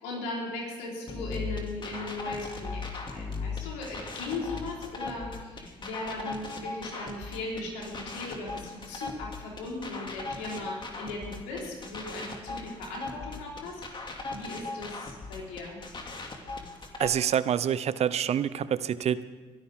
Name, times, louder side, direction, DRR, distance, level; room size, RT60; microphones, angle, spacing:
voice 1, 0.0-15.8, left 2 dB, 85° left, -3 dB, 4.2 m, -38 dB
sound 1, 1.1-17.1, left 3 dB, 35° left, 2.5 m, -38 dB
voice 2, 17.0-19.2, right 9 dB, 55° right, 16 dB, 0.7 m, -27 dB
22.5 x 13.0 x 3.7 m, 1.4 s
hypercardioid pair, 55°, 13 cm